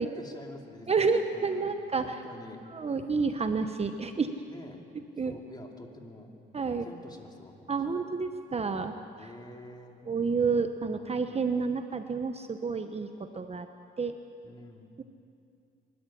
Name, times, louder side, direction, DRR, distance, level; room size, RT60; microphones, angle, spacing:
voice 1, 0.0-2.6 4.5-4.8 5.2-6.3 6.8-8.1 8.8-10.1 10.8-11.4 14.4-14.9, left 1 dB, 20° left, 2 dB, 2.9 m, -47 dB
voice 2, 0.9-2.2 2.7-4.4 5.2-5.4 6.5-6.9 7.7-9.3 10.1-13.7 14.0-14.1 15.0-15.1, right 4 dB, 30° right, 7 dB, 1.0 m, -29 dB
23.5 x 13.5 x 10.0 m, 2.6 s
cardioid pair, 90°, 20 cm